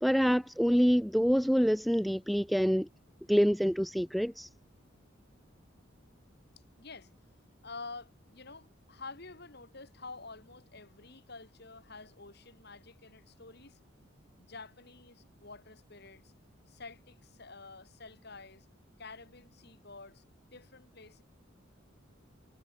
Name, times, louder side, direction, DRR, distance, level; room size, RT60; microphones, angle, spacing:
voice 1, 0.0-2.9 3.3-4.5, equal, ahead, 0.6 m, -26 dB
voice 2, 6.8-7.1 7.6-13.8 14.4-16.3 16.7-18.7 19.0-20.2 20.5-21.2, left 3 dB, 55° left, 5.0 m, -49 dB
head